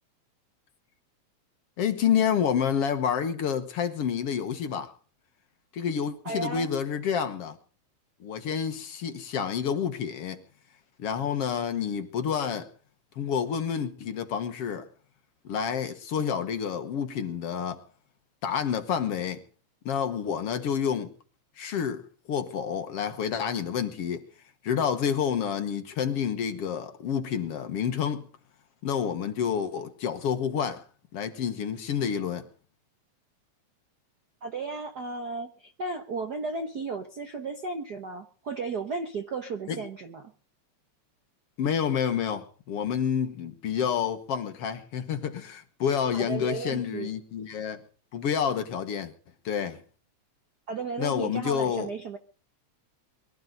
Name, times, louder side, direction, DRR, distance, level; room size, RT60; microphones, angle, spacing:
voice 1, 1.8-4.9 5.7-7.6 8.2-10.4 11.0-12.7 13.2-14.9 15.5-17.8 18.4-19.4 19.9-21.1 21.6-22.0 22.3-24.2 24.6-28.2 28.8-30.8 31.1-32.5 39.7-39.8 41.6-47.8 48.1-49.1 49.5-49.8 51.0-51.9, left 7 dB, 60° left, 2.1 m, -29 dB
voice 2, 6.2-6.7 34.4-40.2 46.1-47.1 50.7-52.2, right 4 dB, 55° right, 1.1 m, -34 dB
23.0 x 14.0 x 3.9 m
omnidirectional pair, 3.4 m